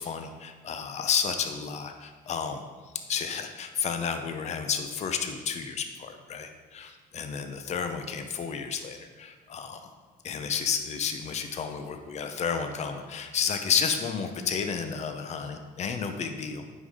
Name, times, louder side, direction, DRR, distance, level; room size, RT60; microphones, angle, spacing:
voice 1, 0.0-2.6 3.1-9.8 10.2-16.6, left 6 dB, 40° left, 7 dB, 0.7 m, -31 dB
9.4 x 5.5 x 3.6 m, 1.4 s
cardioid pair, 110°, 17 cm